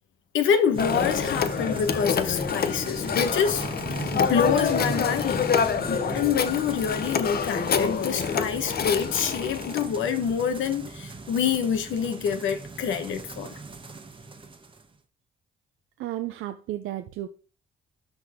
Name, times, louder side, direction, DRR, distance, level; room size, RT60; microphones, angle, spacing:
voice 1, 0.3-3.6 4.1-13.5, left 7 dB, 75° left, 1.4 m, -26 dB
sound 1, 0.7-14.9, right 3 dB, 25° right, 1.2 m, -38 dB
Telephone, 0.8-9.9, left 7 dB, 50° left, 0.9 m, -27 dB
voice 2, 16.0-17.3, right 14 dB, 85° right, 0.6 m, -33 dB
12.5 x 4.1 x 3.7 m
cardioid pair, 90°, 20 cm